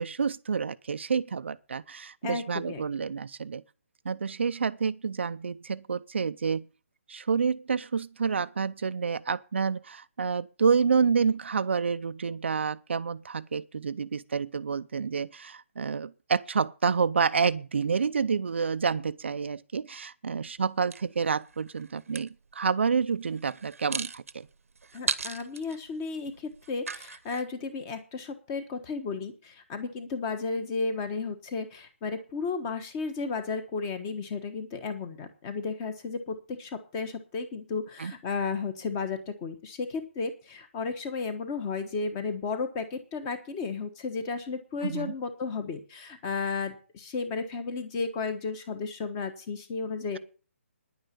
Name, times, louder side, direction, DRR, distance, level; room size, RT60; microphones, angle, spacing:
voice 1, 0.0-3.6 4.0-6.7 7.1-24.5 38.0-38.1 44.8-45.1, right 5 dB, 55° right, 0.5 m, -28 dB
voice 2, 2.2-3.1 24.9-50.2, left 4 dB, 15° left, 1.2 m, -33 dB
sound 1, 20.9-22.3 23.4-27.4, right 5 dB, 85° right, 1.0 m, -36 dB
10.5 x 8.9 x 6.8 m
hypercardioid pair, 175°, 7 cm